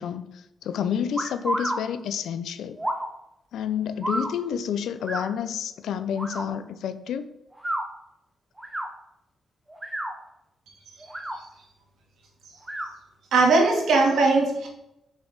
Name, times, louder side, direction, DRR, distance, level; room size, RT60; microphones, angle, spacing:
voice 1, 0.0-2.8 3.5-7.3, left 8 dB, 85° left, 11 dB, 0.6 m, -29 dB
sound 1, 1.2-1.8 2.8-3.1 4.0-4.3 5.0-5.3 6.1-6.4 7.5-7.8 8.6-8.9 9.7-10.1 11.0-11.4 12.6-12.9, right 1 dB, 10° right, 1.0 m, -29 dB
voice 2, 13.3-14.7, right 3 dB, 80° right, 0 dB, 2.1 m, -19 dB
6.4 x 6.2 x 5.1 m, 0.84 s
wide cardioid pair, 150°, 0 cm